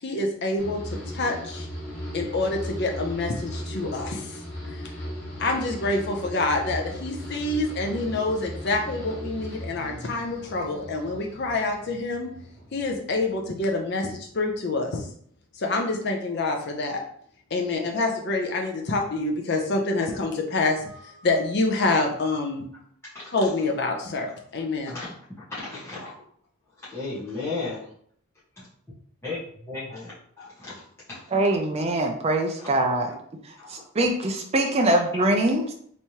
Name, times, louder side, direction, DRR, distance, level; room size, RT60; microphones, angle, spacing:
voice 1, 0.0-1.7 2.1-4.4 4.7-4.9 5.4-12.3 12.7-15.1 15.6-17.0 17.5-22.6 23.3-25.0, left 2 dB, 50° left, 2 dB, 0.5 m, -27 dB
sound 1, 0.6-13.9 14.2-14.8, equal, 65° left, 1.5 m, -37 dB
voice 2, 23.0-23.5 24.9-26.1 26.8-27.9 29.2-29.4 29.7-30.8 31.1-31.2 32.6-32.7 33.6-33.8, left 3 dB, 10° left, -12 dB, 1.1 m, -35 dB
voice 3, 31.3-33.1 33.4-35.7, right 1 dB, 30° right, 2 dB, 0.3 m, -23 dB
3.4 x 3.0 x 2.8 m, 0.62 s
head